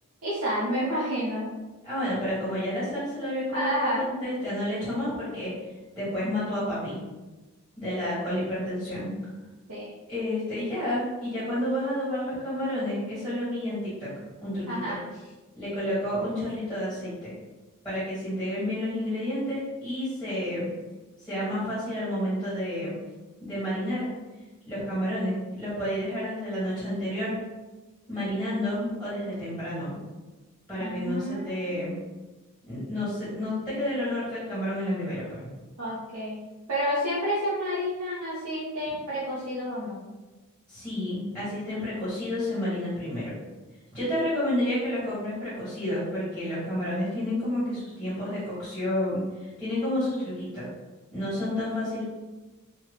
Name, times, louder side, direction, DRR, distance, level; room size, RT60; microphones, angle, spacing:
voice 1, 0.2-1.5 3.5-4.1 9.7-9.9 14.7-15.0 30.8-31.9 35.8-36.4 36.7-40.0, equal, 85° right, -9 dB, 0.8 m, -30 dB
voice 2, 1.8-5.5 5.9-7.0 7.8-9.1 10.1-14.1 14.4-15.0 15.5-17.3 17.8-20.7 21.2-22.9 23.4-24.1 24.7-27.4 28.1-30.0 30.7-32.0 32.6-35.5 40.7-43.3 43.9-50.7 51.1-52.0, left 1 dB, 5° left, -11 dB, 1.4 m, -30 dB
2.9 x 2.3 x 3.7 m, 1.2 s
head